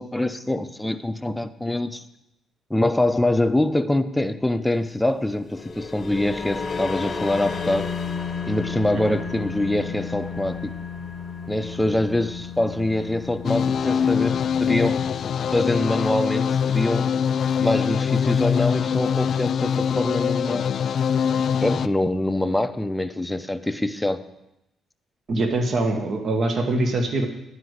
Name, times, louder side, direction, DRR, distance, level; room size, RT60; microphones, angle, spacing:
voice 1, 0.0-2.0 2.7-7.9 8.5-10.8 11.5-15.0 15.5-17.2 17.6-20.7 21.6-24.2, left 1 dB, 5° left, 10 dB, 0.6 m, -24 dB
sound 1, 5.3-16.0, left 5 dB, 40° left, 0.8 m, -33 dB
sound 2, 13.4-21.9, left 7 dB, 60° left, 0.3 m, -23 dB
voice 2, 25.3-27.3, right 2 dB, 50° right, 4 dB, 1.4 m, -23 dB
11.0 x 5.1 x 8.0 m, 0.88 s
cardioid pair, 90°, 0 cm